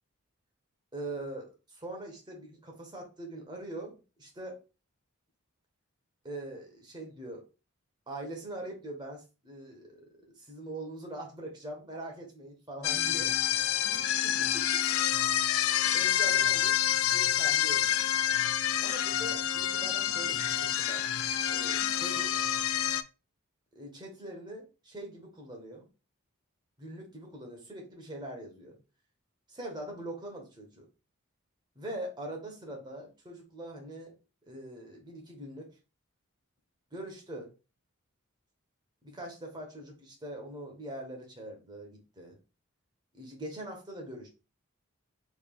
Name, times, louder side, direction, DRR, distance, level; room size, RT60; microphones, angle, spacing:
voice 1, 0.9-4.6 6.2-7.4 8.1-10.0 10.4-13.3 13.9-14.6 15.9-18.0 18.8-21.1 21.5-22.3 23.7-25.9 26.8-28.8 29.5-30.9 31.7-34.1 34.5-35.7 36.9-37.5 39.0-42.4 43.1-44.3, right 1 dB, 20° right, 1 dB, 1.2 m, -42 dB
sound 1, 12.8-23.0, left 10 dB, 65° left, 0.3 m, -28 dB
4.2 x 3.5 x 2.4 m, 0.31 s
head